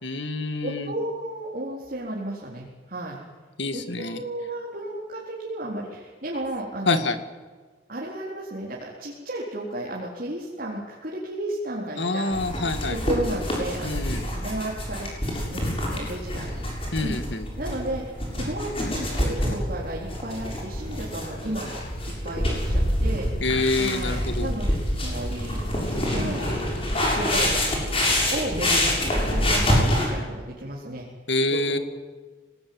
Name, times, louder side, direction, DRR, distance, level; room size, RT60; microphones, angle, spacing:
voice 1, 0.0-0.9 3.6-4.2 6.9-7.2 11.9-13.0 13.8-14.2 16.9-17.5 23.4-24.5 31.3-31.8, left 2 dB, 65° left, 9 dB, 2.1 m, -26 dB
voice 2, 0.6-3.2 3.7-7.0 7.9-12.3 12.9-14.0 14.3-15.1 15.5-16.7 17.0-17.2 17.6-21.8 22.0-23.3 23.7-26.5 27.1-27.7 28.3-31.1 31.7-31.8, right 1 dB, 50° right, -4 dB, 4.2 m, -33 dB
sound 1, 12.3-30.1, left 1 dB, 30° left, 7.3 m, -26 dB
25.5 x 19.5 x 9.6 m, 1.4 s
head